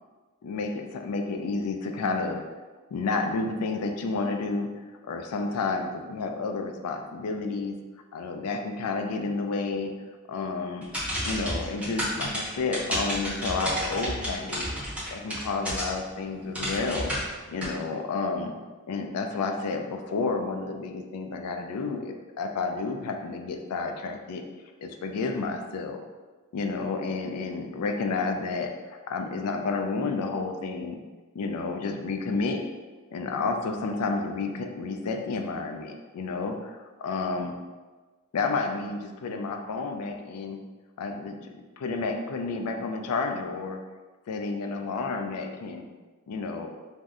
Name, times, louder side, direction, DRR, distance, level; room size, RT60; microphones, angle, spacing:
voice 1, 0.4-2.4 2.9-4.7 5.1-7.8 8.1-9.9 10.3-10.9 11.2-14.7 15.1-18.5 18.9-24.4 24.8-26.0 26.5-31.0 31.3-32.6 33.1-37.5 38.3-40.6 41.0-43.8 44.3-45.8 46.3-46.7, left 4 dB, 85° left, 4 dB, 0.4 m, -30 dB
sound 1, 10.8-16.1 16.5-17.7, equal, 5° right, 0.8 m, -31 dB
2.6 x 2.1 x 3.5 m, 1.3 s
head